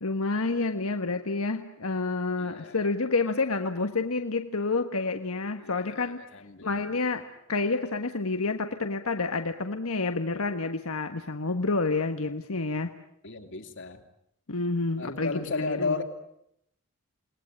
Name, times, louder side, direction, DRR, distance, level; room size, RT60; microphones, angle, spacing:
voice 1, 0.0-6.2 6.6-12.9 14.5-15.3 15.7-16.0, left 3 dB, 75° left, 7 dB, 1.5 m, -29 dB
voice 2, 2.4-2.9 5.6-6.7 13.2-14.0 15.0-16.0, left 4 dB, 60° left, 5 dB, 3.1 m, -34 dB
28.5 x 20.5 x 10.0 m, 0.77 s
head